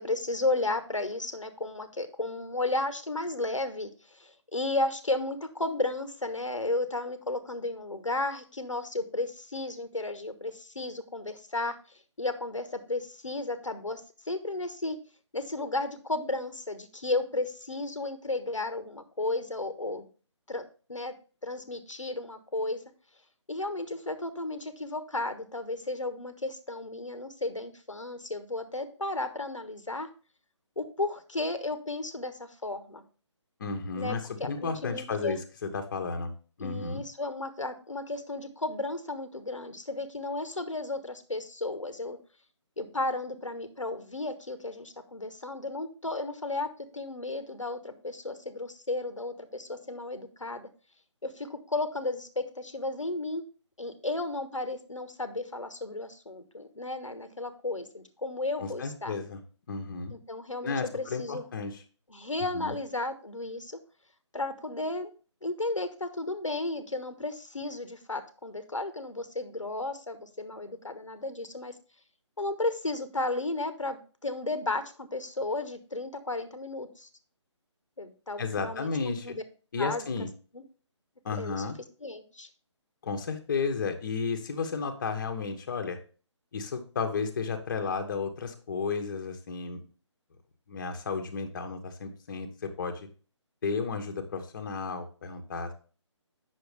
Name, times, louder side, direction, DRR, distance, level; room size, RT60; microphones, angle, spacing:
voice 1, 0.0-11.8 12.2-14.0 14.3-15.0 15.3-20.1 20.5-21.1 21.4-22.8 23.5-30.1 30.8-33.0 34.0-35.4 36.6-42.2 42.8-50.7 51.2-53.4 53.8-59.2 60.1-61.4 62.1-63.8 64.3-65.1 65.4-71.7 72.4-77.1 78.0-78.9 79.2-79.4 79.8-80.0 80.5-80.6 81.4-81.6 82.0-82.5, left 2 dB, 85° left, 9 dB, 1.2 m, -33 dB
voice 2, 33.6-36.3 36.6-37.0 58.6-59.4 59.7-60.1 60.6-61.8 62.5-62.7 78.4-79.3 79.7-80.3 81.2-81.8 83.0-86.0 86.5-89.8 90.7-93.1 93.6-95.7, left 5 dB, 40° left, 5 dB, 1.2 m, -33 dB
8.1 x 6.3 x 3.3 m, 0.37 s
figure-of-eight pair, 145°, 16 cm